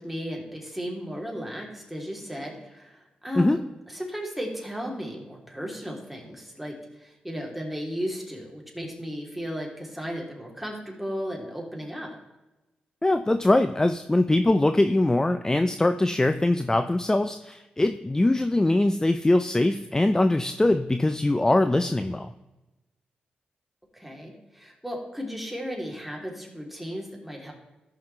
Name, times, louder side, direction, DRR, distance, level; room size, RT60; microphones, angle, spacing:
voice 1, 0.0-3.6 3.9-12.1 23.9-27.5, equal, 5° right, -1 dB, 3.0 m, -35 dB
voice 2, 13.0-22.3, left 2 dB, 20° left, 9 dB, 0.5 m, -22 dB
13.5 x 5.8 x 3.2 m, 1.0 s
supercardioid pair, 50°, 3 cm